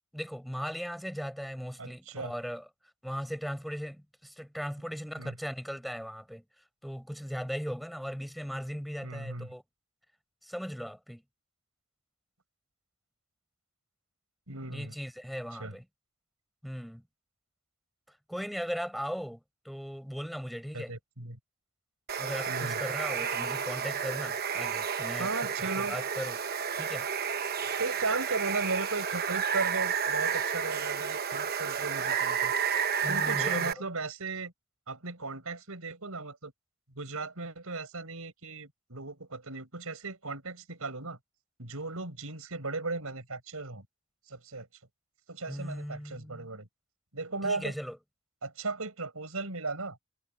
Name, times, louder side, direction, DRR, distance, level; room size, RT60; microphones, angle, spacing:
voice 1, 0.1-2.7 3.0-6.4 6.8-9.6 10.4-11.2 14.7-15.8 16.6-17.0 18.1-20.9 22.2-25.3 25.8-26.4 26.8-27.1 33.0-33.8 45.5-46.5 47.4-48.0, equal, ahead, 6.3 m, -38 dB
voice 2, 1.8-2.3 5.2-5.4 9.0-9.5 14.5-15.0 15.6-15.7 20.7-21.4 22.5-22.8 25.2-26.0 27.6-32.5 33.1-34.5 34.9-36.5 37.0-41.2 41.6-43.9 44.3-44.7 45.3-46.7 47.1-47.7 48.4-50.0, right 3 dB, 85° right, 5.2 m, -36 dB
Water, 22.1-33.7, right 7 dB, 45° right, 1.1 m, -31 dB
head